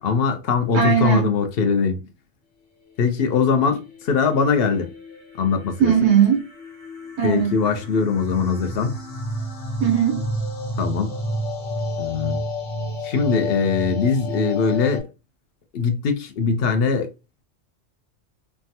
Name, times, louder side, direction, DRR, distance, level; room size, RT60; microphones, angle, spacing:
voice 1, 0.0-2.1 3.0-4.9 5.4-5.9 7.2-8.9 10.8-11.1 12.0-12.4 13.0-15.1 15.7-17.1, left 5 dB, 60° left, 0.7 m, -21 dB
voice 2, 0.7-1.3 5.8-6.5 7.2-7.5 9.8-10.3, right 8 dB, 90° right, 1.3 m, -18 dB
sound 1, 3.6-15.0, left 1 dB, 80° left, 1.2 m, -31 dB
3.4 x 2.1 x 2.7 m
omnidirectional pair, 1.3 m